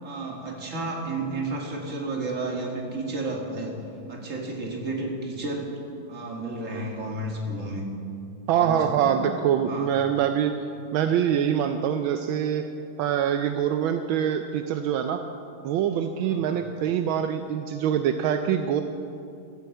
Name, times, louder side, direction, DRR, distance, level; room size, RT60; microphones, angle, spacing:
voice 1, 0.0-3.8 4.1-5.7 6.1-7.9 8.6-9.2 9.7-9.9 16.3-16.6, right 2 dB, 40° right, -1 dB, 2.2 m, -32 dB
voice 2, 8.5-10.6 10.9-12.6 13.0-15.3 15.6-18.8, right 9 dB, 80° right, 7 dB, 1.4 m, -24 dB
14.5 x 8.1 x 7.8 m, 2.5 s
omnidirectional pair, 2.2 m